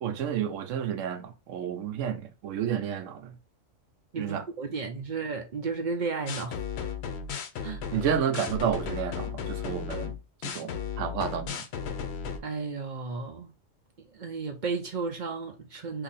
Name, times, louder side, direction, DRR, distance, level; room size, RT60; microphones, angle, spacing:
voice 1, 0.0-3.4 4.2-4.4 7.9-10.1 10.4-11.6, right 8 dB, 75° right, 0.9 m, -31 dB
voice 2, 4.1-6.6 7.6-7.8 12.4-13.5 14.1-16.0, right 4 dB, 55° right, 0.5 m, -33 dB
sound 1, 6.3-12.4, left 6 dB, 65° left, 0.8 m, -35 dB
2.8 x 2.5 x 3.9 m
omnidirectional pair, 1.4 m